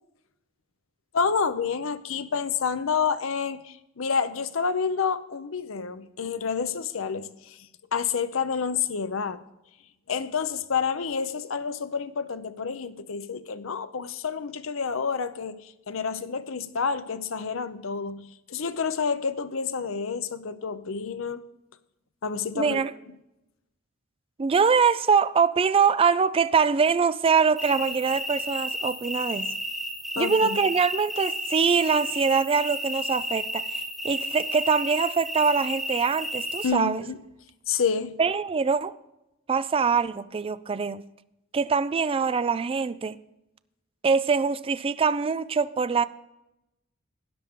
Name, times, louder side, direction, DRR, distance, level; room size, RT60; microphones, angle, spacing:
voice 1, 1.1-7.3 7.9-9.4 10.1-15.6 15.9-21.4 22.2-22.8 30.2-30.4 36.6-37.2 37.7-38.2, left 6 dB, 80° left, 0.7 m, -29 dB
voice 2, 22.6-22.9 24.4-29.5 30.2-37.0 38.2-38.9 39.5-41.0 41.5-43.2 44.0-46.0, right 5 dB, 30° right, 0.4 m, -23 dB
sound 1, 27.6-36.7, equal, ahead, 2.1 m, -32 dB
13.0 x 10.0 x 3.7 m
head